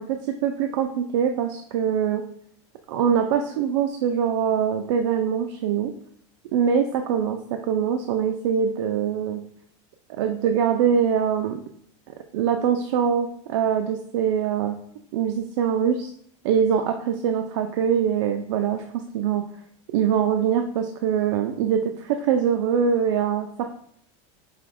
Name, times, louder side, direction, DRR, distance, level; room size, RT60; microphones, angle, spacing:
voice 1, 0.0-2.3 2.9-5.9 6.5-7.4 7.7-9.4 10.2-11.6 12.3-14.8 15.1-16.1 16.4-19.4 19.9-23.7, right 8 dB, 80° right, 5 dB, 0.4 m, -23 dB
5.0 x 3.0 x 2.5 m, 0.67 s
supercardioid pair, 170°, 15 cm